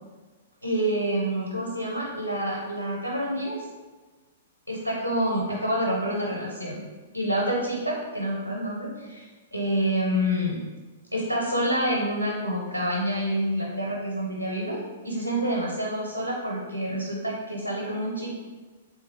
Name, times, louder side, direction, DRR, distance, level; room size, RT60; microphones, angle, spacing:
voice 1, 0.6-3.7 4.7-6.8 7.1-10.6 11.1-18.3, equal, 90° left, -2 dB, 0.6 m, -28 dB
3.5 x 2.5 x 3.2 m, 1.3 s
figure-of-eight pair, 105°, 0 cm